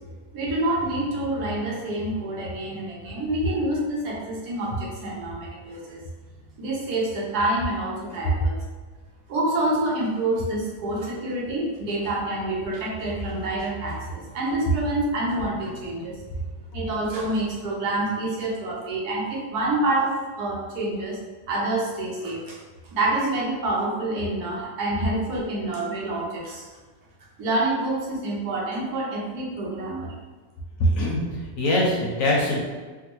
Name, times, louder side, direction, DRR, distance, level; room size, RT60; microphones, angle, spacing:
voice 1, 0.3-6.0 6.6-8.5 9.3-16.2 16.7-21.2 21.5-22.6 22.9-26.7 27.4-30.1, right 2 dB, 75° right, -4 dB, 1.3 m, -27 dB
voice 2, 30.8-31.2 31.6-32.6, left 1 dB, 70° left, -3 dB, 0.9 m, -22 dB
3.5 x 2.2 x 2.9 m, 1.4 s
omnidirectional pair, 1.7 m